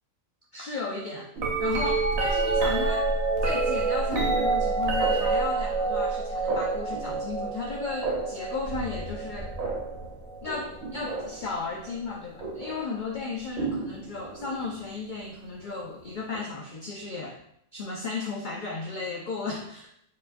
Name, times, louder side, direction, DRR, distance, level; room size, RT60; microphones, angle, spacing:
voice 1, 0.5-1.3 1.6-3.1 3.4-9.6 10.4-17.4 17.7-19.9, left 4 dB, 75° left, -1 dB, 0.4 m, -34 dB
sound 1, 1.4-11.5 12.4-12.8 13.6-14.6 16.3-16.4, right 3 dB, 85° right, 1.3 m, -28 dB
4.5 x 2.9 x 2.5 m, 0.73 s
omnidirectional pair, 1.4 m